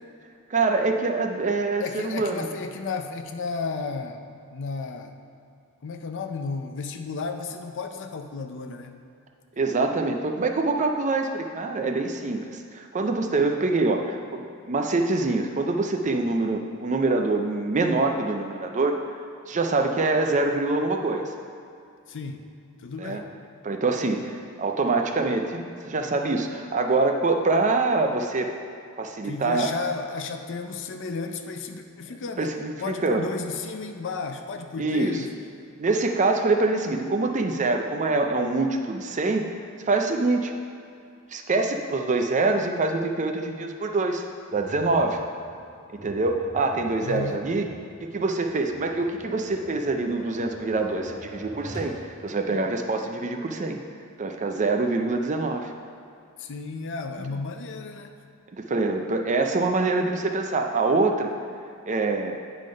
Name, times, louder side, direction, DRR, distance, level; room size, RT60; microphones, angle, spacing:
voice 1, 0.5-2.5 9.6-19.0 19.5-21.3 23.0-23.2 23.6-28.5 29.0-29.7 32.4-33.3 34.8-35.2 35.8-39.5 39.9-40.5 41.3-44.2 44.5-45.2 45.9-47.7 48.0-53.8 54.2-55.7 57.2-57.3 58.5-61.3 61.9-62.4, right 3 dB, 35° right, 4 dB, 0.5 m, -25 dB
voice 2, 1.8-4.2 4.5-5.2 5.8-9.0 22.1-22.4 22.8-23.3 29.2-35.3 47.0-47.4 56.4-58.1, left 4 dB, 60° left, 6 dB, 0.5 m, -33 dB
Tap, 44.5-52.0, equal, 15° right, 1.3 m, -44 dB
9.1 x 3.8 x 5.1 m, 2.5 s
head